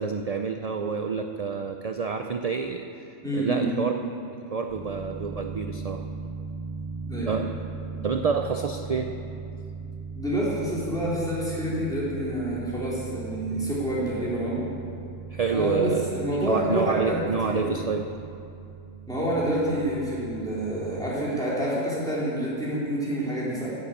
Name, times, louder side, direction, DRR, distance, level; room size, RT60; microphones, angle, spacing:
voice 1, 0.0-2.9 3.3-3.9 4.5-6.0 7.3-7.4 8.0-9.1 15.3-16.1 16.4-18.0, right 5 dB, 60° right, 5 dB, 0.4 m, -28 dB
voice 2, 3.2-3.8 7.1-7.4 10.1-14.6 15.5-17.7 19.1-23.7, right 1 dB, 5° left, -9 dB, 3.7 m, -28 dB
sound 1, 4.7-21.1, right 5 dB, 25° right, 1.6 m, -39 dB
10.5 x 7.7 x 8.6 m, 2.5 s
omnidirectional pair, 1.3 m